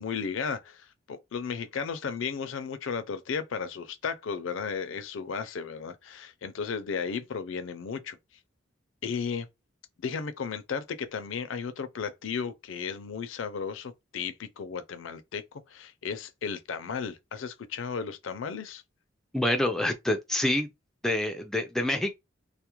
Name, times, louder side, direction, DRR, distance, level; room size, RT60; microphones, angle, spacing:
voice 1, 0.0-8.2 9.0-9.5 10.0-18.8, left 6 dB, 75° left, 0.4 m, -34 dB
voice 2, 19.3-20.7 21.0-22.1, left 1 dB, ahead, 0.3 m, -27 dB
2.3 x 2.0 x 2.9 m
head